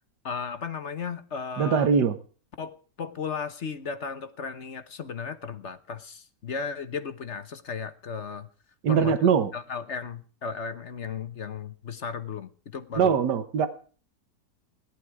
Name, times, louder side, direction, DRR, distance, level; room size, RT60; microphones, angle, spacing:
voice 1, 0.2-1.9 2.6-8.5 8.9-9.2 9.5-13.2, left 6 dB, 45° left, 10 dB, 1.3 m, -35 dB
voice 2, 1.6-2.1 8.8-9.5 13.0-13.7, right 7 dB, 80° right, 11 dB, 1.8 m, -22 dB
18.0 x 11.5 x 4.8 m, 0.41 s
omnidirectional pair, 1.8 m